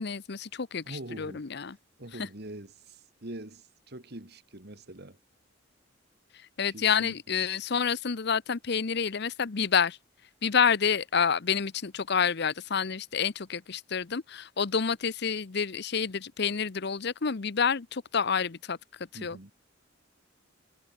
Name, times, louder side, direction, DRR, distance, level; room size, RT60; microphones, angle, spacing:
voice 1, 0.0-1.8 6.6-10.0 10.4-18.8 19.2-19.5, left 6 dB, 55° left, 0.8 m, -28 dB
voice 2, 0.9-1.4 2.0-5.2 6.7-7.2 19.1-19.5, right 1 dB, 55° right, 2.5 m, -44 dB
head